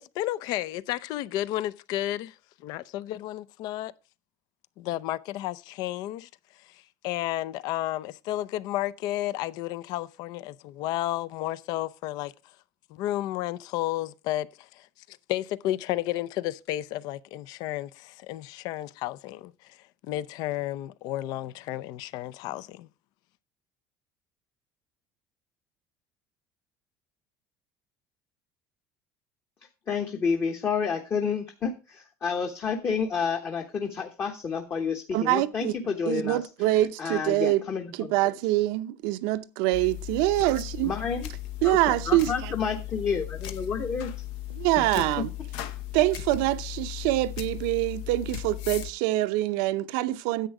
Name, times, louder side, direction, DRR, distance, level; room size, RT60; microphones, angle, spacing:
voice 1, 0.0-2.4 2.6-3.9 4.8-6.3 6.6-12.3 12.9-22.9, left 14 dB, 65° left, 0.5 m, -32 dB
voice 2, 29.9-38.3 40.8-41.3 41.6-44.1 45.0-45.1, left 6 dB, 35° left, 1.0 m, -30 dB
voice 3, 35.1-35.7 36.1-37.6 37.9-40.9 41.6-42.5 44.5-45.3 45.9-50.5, right 17 dB, 90° right, 0.7 m, -25 dB
sound 1, 39.7-48.9, left 13 dB, 85° left, 1.1 m, -37 dB
10.0 x 8.0 x 4.8 m
cardioid pair, 150°, 7 cm